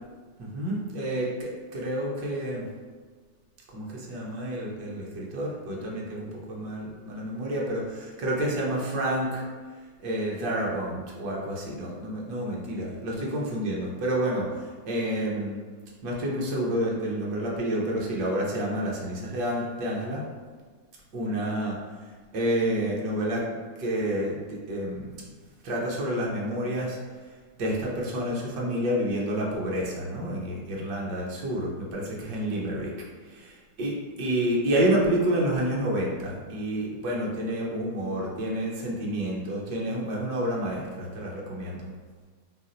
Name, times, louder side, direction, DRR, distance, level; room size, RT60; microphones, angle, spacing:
voice 1, 0.4-2.7 3.7-9.4 10.0-15.5 16.0-20.2 21.1-21.8 22.3-23.4 23.8-25.2 25.6-27.0 27.6-32.9 33.8-33.9 34.2-41.9, right 1 dB, 40° right, -4 dB, 0.8 m, -29 dB
2.7 x 2.0 x 3.9 m, 1.5 s
supercardioid pair, 160°, 0 cm